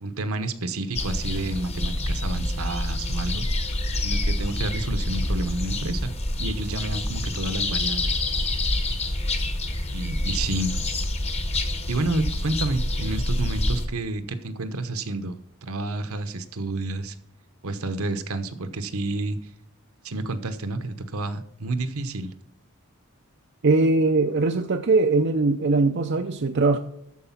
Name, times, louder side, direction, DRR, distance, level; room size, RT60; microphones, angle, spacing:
voice 1, 0.0-3.4 4.0-6.1 6.4-8.2 9.9-10.8 11.9-17.1 17.6-19.4 20.0-22.3, right 2 dB, 70° right, 10 dB, 1.0 m, -30 dB
sound 1, 0.9-13.9, left 1 dB, 30° left, 1.2 m, -27 dB
voice 2, 23.6-26.8, right 3 dB, 50° right, 6 dB, 0.5 m, -21 dB
13.0 x 4.8 x 5.8 m, 0.78 s
head